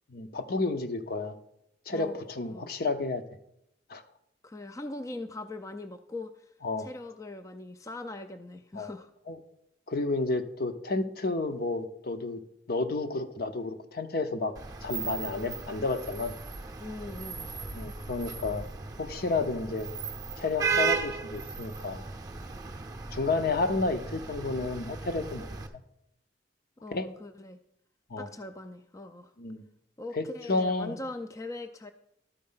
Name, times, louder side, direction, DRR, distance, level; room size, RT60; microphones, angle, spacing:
voice 1, 0.1-1.4 1.9-3.2 3.9-4.0 6.6-6.9 8.8-8.9 9.3-9.4 9.9-12.4 12.7-14.5 14.8-16.3 17.7-18.6 19.0-19.9 20.4-22.0 23.1-25.5 26.9-27.1 28.1-28.3 29.4-29.6 30.1-31.0, left 3 dB, 60° left, 8 dB, 0.7 m, -31 dB
voice 2, 1.9-2.2 2.5-2.7 4.4-6.5 6.8-9.1 16.8-17.5 26.8-27.6 28.2-29.3 30.0-31.9, left 2 dB, 20° left, 8 dB, 0.4 m, -41 dB
Vehicle horn car horn honking / Traffic noise roadway noise, 14.6-25.7, right 5 dB, 20° right, 0.6 m, -36 dB
12.5 x 4.3 x 5.5 m, 0.79 s
head